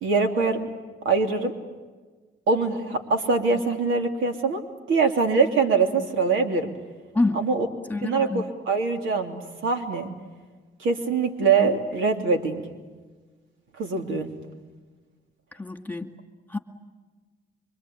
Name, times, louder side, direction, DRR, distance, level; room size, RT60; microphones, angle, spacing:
voice 1, 0.0-0.7 1.0-1.5 2.5-4.6 4.9-6.7 7.3-7.7 8.0-10.1 10.8-12.6 13.8-14.3, right 4 dB, 80° right, 5 dB, 3.2 m, -23 dB
voice 2, 7.9-8.5 15.5-16.1 16.5-16.6, left 2 dB, 10° left, 7 dB, 2.2 m, -27 dB
25.5 x 24.5 x 8.7 m, 1.3 s
cardioid pair, 90°, 20 cm